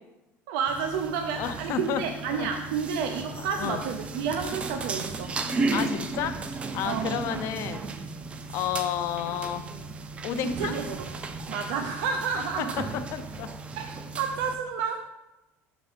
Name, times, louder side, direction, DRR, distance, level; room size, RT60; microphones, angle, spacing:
voice 1, 0.5-5.4 6.8-7.1 10.4-11.1 11.5-12.9 13.8-15.1, right 6 dB, 90° right, 5 dB, 0.5 m, -30 dB
sound 1, 0.7-14.6, right 3 dB, 20° right, 0.4 m, -35 dB
voice 2, 1.4-2.0 2.3-2.5 3.6-3.8 5.7-6.4 6.7-8.0 8.5-9.6 10.2-10.8 12.6-12.7 13.1-13.5, left 9 dB, 55° left, 10 dB, 0.5 m, -31 dB
5.7 x 4.1 x 4.9 m, 1.0 s
cardioid pair, 165°, 6 cm